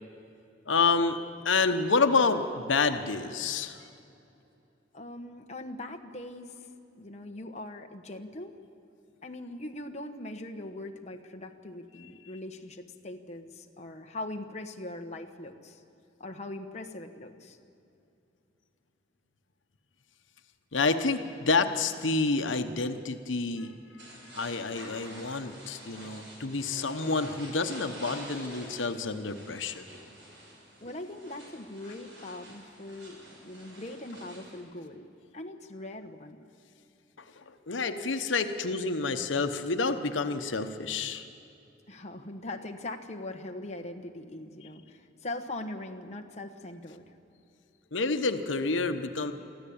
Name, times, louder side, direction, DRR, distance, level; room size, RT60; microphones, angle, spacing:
voice 1, 0.7-1.2 1.4-3.8 20.7-24.1 24.3-29.9 37.7-41.2 47.9-49.3, left 4 dB, 90° left, 8 dB, 1.0 m, -28 dB
voice 2, 4.9-6.7 7.0-8.6 9.2-15.8 16.2-17.6 30.8-36.4 41.9-47.1, left 1 dB, 35° left, 4 dB, 1.2 m, -41 dB
sound 1, 24.0-34.6, equal, 75° right, 6.6 m, -48 dB
24.0 x 14.5 x 8.7 m, 2.7 s
head